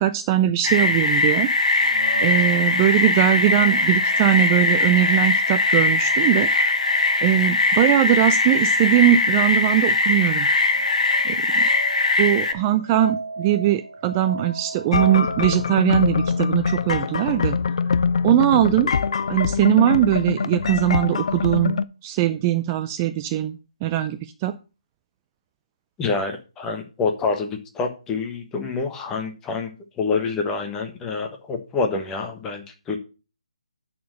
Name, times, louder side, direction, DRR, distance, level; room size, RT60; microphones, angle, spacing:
voice 1, 0.0-1.5 2.2-6.5 7.2-10.5 11.2-11.6 12.2-17.6 18.2-18.9 19.3-24.6, right 13 dB, 20° right, 10 dB, 0.4 m, -20 dB
sound 1, 0.6-12.5, left 3 dB, 75° left, 1.3 m, -20 dB
sound 2, 1.8-17.4, right 2 dB, 80° right, 1.6 m, -37 dB
sound 3, 14.9-21.8, left 5 dB, 55° left, 0.5 m, -24 dB
voice 2, 26.0-33.0, left 4 dB, 15° left, 4 dB, 1.2 m, -27 dB
9.2 x 4.4 x 6.4 m, 0.32 s
figure-of-eight pair, 150°, 4 cm